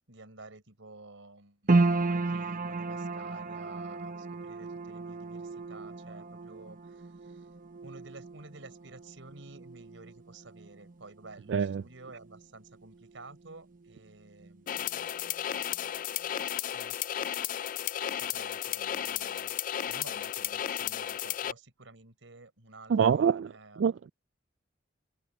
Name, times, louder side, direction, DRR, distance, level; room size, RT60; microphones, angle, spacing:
voice 1, 0.1-7.5 7.8-15.1 16.7-17.0 18.2-19.6 19.8-23.8, right 3 dB, 90° right, 4.2 m, -51 dB
sound 1, 1.7-14.1 14.3-15.3 15.7-15.8, right 3 dB, 45° right, 0.8 m, -34 dB
voice 2, 11.5-11.8 22.9-23.5 23.8-24.1, right 7 dB, 65° right, 0.3 m, -25 dB
sound 2, 14.7-21.5, left 10 dB, 45° left, 0.3 m, -34 dB
head